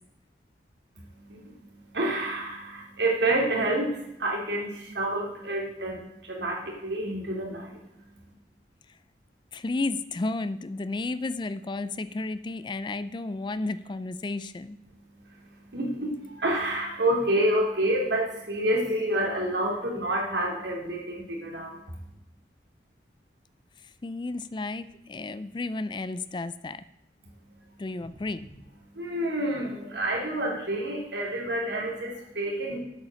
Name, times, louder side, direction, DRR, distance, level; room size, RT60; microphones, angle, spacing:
voice 1, 1.0-8.3 14.9-22.1 27.2-27.8 28.8-32.8, right 1 dB, 80° right, -1 dB, 2.9 m, -29 dB
voice 2, 9.5-14.8 24.0-26.8 27.8-28.5, left 2 dB, 25° left, 14 dB, 0.4 m, -32 dB
8.4 x 7.4 x 6.4 m, 0.86 s
head